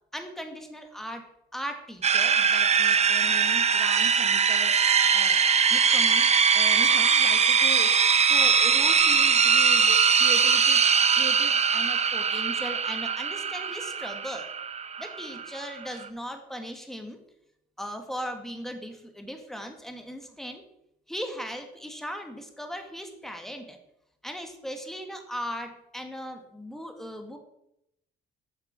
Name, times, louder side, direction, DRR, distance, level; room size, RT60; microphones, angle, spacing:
voice 1, 0.1-1.2 1.5-5.4 5.7-7.9 8.3-10.8 11.1-14.5 15.0-17.2 17.8-20.6 21.1-23.8 24.2-27.4, equal, ahead, 5 dB, 1.5 m, -38 dB
sound 1, 2.0-16.1, right 6 dB, 35° right, 0.6 m, -22 dB
8.3 x 6.5 x 4.9 m, 0.81 s
cardioid pair, 90°, 20 cm